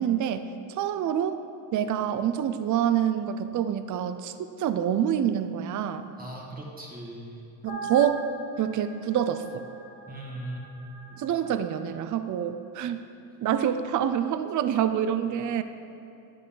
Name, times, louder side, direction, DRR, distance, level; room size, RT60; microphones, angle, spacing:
voice 1, 0.0-1.4 1.7-6.0 7.6-8.2 8.6-9.6 11.2-13.0 13.4-15.6, right 9 dB, 40° right, 10 dB, 0.5 m, -27 dB
voice 2, 6.2-7.4 10.1-10.7, right 1 dB, 20° right, -3 dB, 2.0 m, -39 dB
sound 1, 7.7-12.1, right 2 dB, 15° left, 1.6 m, -43 dB
11.0 x 6.8 x 3.9 m, 2.8 s
cardioid pair, 85°, 48 cm